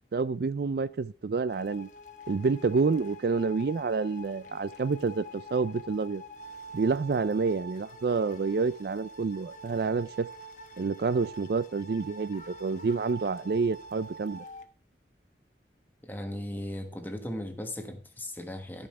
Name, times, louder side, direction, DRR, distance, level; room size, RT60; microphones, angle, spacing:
voice 1, 0.1-1.9 2.3-6.2 6.7-10.3 10.8-14.4, right 4 dB, 60° right, 0.4 m, -28 dB
sound 1, 1.5-14.7, equal, 45° left, 1.1 m, -46 dB
voice 2, 16.0-18.9, left 1 dB, 10° left, 1.3 m, -37 dB
13.5 x 5.5 x 5.6 m
head